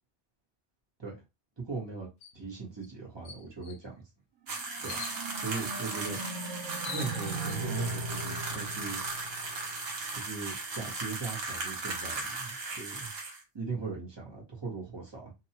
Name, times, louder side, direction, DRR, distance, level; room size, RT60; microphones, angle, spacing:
voice 1, 1.6-2.1 2.3-3.9 4.8-5.0 5.4-6.2 6.8-9.0 10.1-13.1 13.5-15.3, right 4 dB, 25° right, 0.9 m, -39 dB
sound 1, 2.2-2.4 2.8-2.9 3.2-3.8 4.8-5.2 6.3-6.4 6.7-7.6, left 6 dB, 75° left, 0.9 m, -43 dB
Vibrating a spray can's lid, 4.5-13.4, right 3 dB, 55° right, 1.0 m, -37 dB
sound 2, 4.5-10.1, right 2 dB, 85° right, 1.1 m, -39 dB
2.8 x 2.3 x 2.8 m
omnidirectional pair, 1.3 m